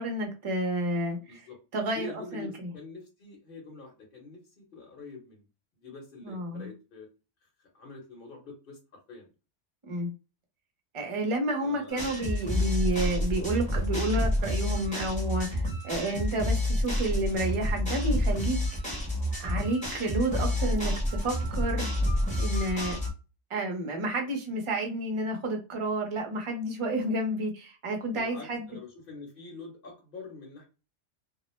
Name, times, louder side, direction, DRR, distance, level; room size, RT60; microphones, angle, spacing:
voice 1, 0.0-1.5 1.7-2.1 2.3-2.7 6.2-6.7 9.8-10.1 10.9-18.8 19.4-21.9 22.4-23.0 23.5-28.6, right 1 dB, 35° right, 0.5 m, -30 dB
voice 2, 1.1-1.6 1.9-5.5 5.8-7.1 7.4-8.8 9.1-9.3 11.6-12.0 28.1-30.6, left 3 dB, 50° left, 0.9 m, -45 dB
sound 1, 11.9-23.1, left 1 dB, 5° left, 0.9 m, -29 dB
2.3 x 2.0 x 3.0 m
omnidirectional pair, 1.3 m